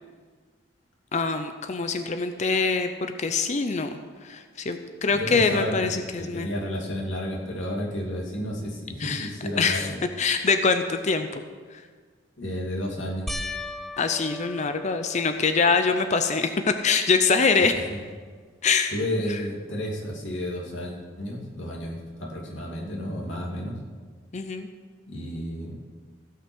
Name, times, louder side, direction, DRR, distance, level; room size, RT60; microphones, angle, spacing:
voice 1, 1.1-4.0 4.2-6.5 9.0-9.3 9.6-9.9 10.2-11.4 11.7-11.8 14.0-17.9 18.6-18.9 19.3-19.4 24.3-24.7, left 4 dB, 40° left, 8 dB, 0.5 m, -24 dB
voice 2, 5.1-10.0 12.4-13.3 18.9-23.7 25.1-25.8, equal, 90° left, -2 dB, 2.6 m, -32 dB
sound 1, 13.3-15.9 16.5-17.1 17.4-17.5 20.7-20.8, left 2 dB, ahead, 0.7 m, -38 dB
15.5 x 5.8 x 6.2 m, 1.5 s
head